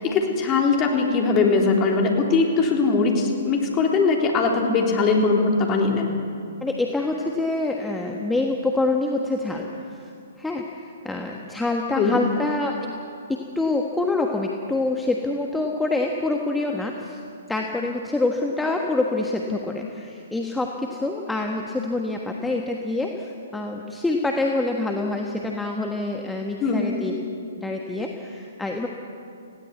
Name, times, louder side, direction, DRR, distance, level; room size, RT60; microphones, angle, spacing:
voice 1, 0.0-6.1 11.9-12.2 26.6-27.0, left 4 dB, 25° left, 1 dB, 3.6 m, -21 dB
voice 2, 6.6-10.1 10.4-13.0 13.3-17.2 17.5-27.1 27.6-28.9, left 2 dB, 5° left, 1 dB, 1.4 m, -26 dB
20.5 x 16.5 x 8.2 m, 2.5 s
figure-of-eight pair, 125°, 0 cm